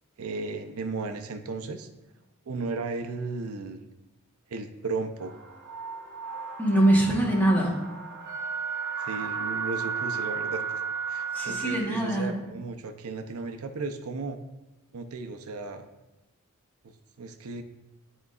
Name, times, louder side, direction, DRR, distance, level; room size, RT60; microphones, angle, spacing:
voice 1, 0.2-1.9 2.5-3.8 4.5-5.3 9.0-10.6 11.1-14.4 14.9-15.9 16.8-17.6, right 3 dB, 80° right, 7 dB, 0.5 m, -35 dB
sound 1, 5.2-11.8, right 6 dB, 55° right, 0.8 m, -34 dB
voice 2, 6.6-7.8 11.3-12.3, right 1 dB, 10° left, -2 dB, 1.1 m, -23 dB
10.5 x 3.9 x 2.4 m, 1.0 s
head